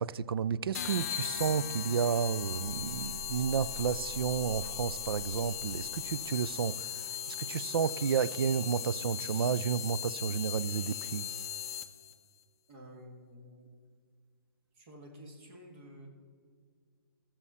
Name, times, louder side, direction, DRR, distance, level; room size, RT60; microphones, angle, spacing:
voice 1, 0.0-6.9 7.3-11.2, right 7 dB, 75° right, 18 dB, 0.4 m, -31 dB
sound 1, 0.7-12.1, left 10 dB, 40° left, 0.5 m, -38 dB
sound 2, 2.7-8.2, right 9 dB, 60° right, 1.0 m, -51 dB
voice 2, 12.7-13.7 14.7-16.1, equal, 30° right, 2 dB, 1.5 m, -51 dB
12.5 x 7.1 x 4.2 m, 2.1 s
hypercardioid pair, 165°, 12 cm